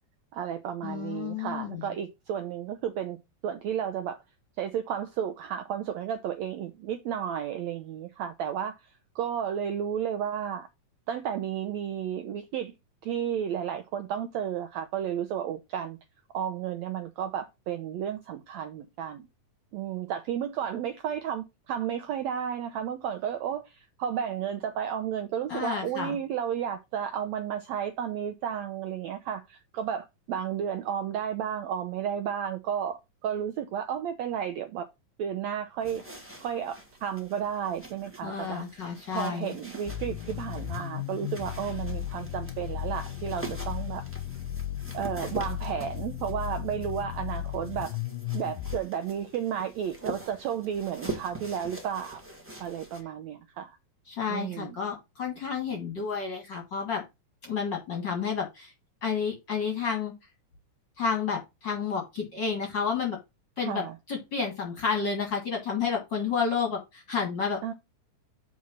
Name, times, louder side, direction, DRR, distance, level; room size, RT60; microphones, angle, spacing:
voice 1, 0.3-3.2 3.4-4.2 4.6-8.9 9.1-10.7 11.1-12.7 13.0-16.0 16.3-19.3 19.7-34.9 35.2-36.0 36.4-38.8 39.1-44.0 44.9-47.9 48.3-52.2 52.6-53.8 54.3-54.8 63.6-64.0 67.6-67.7, right 9 dB, 80° right, 1.6 m, -32 dB
voice 2, 0.8-1.9 25.5-26.2 38.2-39.5 54.1-57.0 57.4-58.7 59.0-60.1 61.0-63.2 63.6-67.7, left 6 dB, 45° left, 1.6 m, -31 dB
sound 1, 35.8-53.0, right 2 dB, 10° right, 0.7 m, -44 dB
sound 2, 39.9-48.8, left 12 dB, 90° left, 2.7 m, -35 dB
7.3 x 4.2 x 6.2 m
omnidirectional pair, 4.0 m